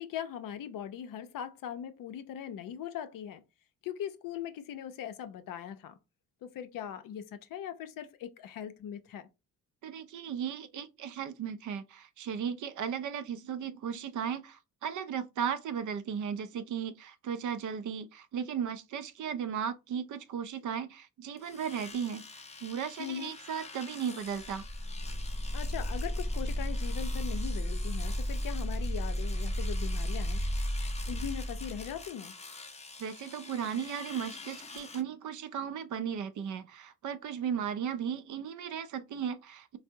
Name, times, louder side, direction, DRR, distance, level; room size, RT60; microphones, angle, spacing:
voice 1, 0.0-3.4 3.8-5.9 6.4-9.3 23.0-23.3 25.5-30.4 31.1-32.3, left 9 dB, 60° left, 0.6 m, -40 dB
voice 2, 9.8-24.6 33.0-39.8, right 8 dB, 55° right, 0.5 m, -36 dB
Domestic sounds home sounds, 21.4-35.0, left 4 dB, 20° left, 0.6 m, -47 dB
sound 1, 24.4-32.1, equal, 20° right, 0.7 m, -33 dB
3.3 x 2.0 x 2.6 m
supercardioid pair, 75°, 37 cm